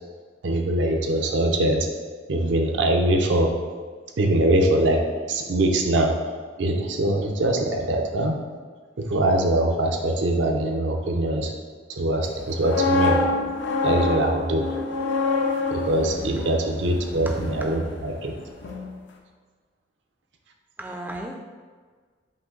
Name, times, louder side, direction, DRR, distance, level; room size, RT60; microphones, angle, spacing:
voice 1, 0.4-1.9 2.3-3.5 4.2-5.0 5.3-6.1 6.6-8.4 9.0-11.5 11.9-13.2 13.8-14.7 15.7-18.3, right 1 dB, 75° right, 3 dB, 0.6 m, -22 dB
sound 1, 12.4-18.3 18.6-18.9, left 3 dB, 75° left, 0.5 m, -26 dB
voice 2, 16.4-16.7 17.1-17.4 20.8-21.4, right 1 dB, 10° right, 0 dB, 0.3 m, -36 dB
5.3 x 2.6 x 3.8 m, 1.5 s
head